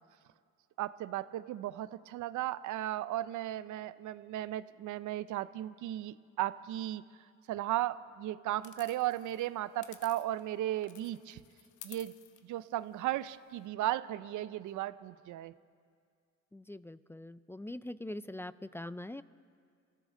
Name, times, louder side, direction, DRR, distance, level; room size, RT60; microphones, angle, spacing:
voice 1, 0.8-7.0 7.5-11.4 11.8-12.1 12.4-15.5, right 14 dB, 80° right, 16 dB, 0.6 m, -35 dB
sound 1, 8.6-10.5 10.8-13.6, left 10 dB, 80° left, 1.0 m, -55 dB
voice 2, 16.5-19.2, left 1 dB, 10° left, 15 dB, 0.3 m, -43 dB
26.5 x 14.0 x 3.8 m, 2.2 s
cardioid pair, 90°, 30 cm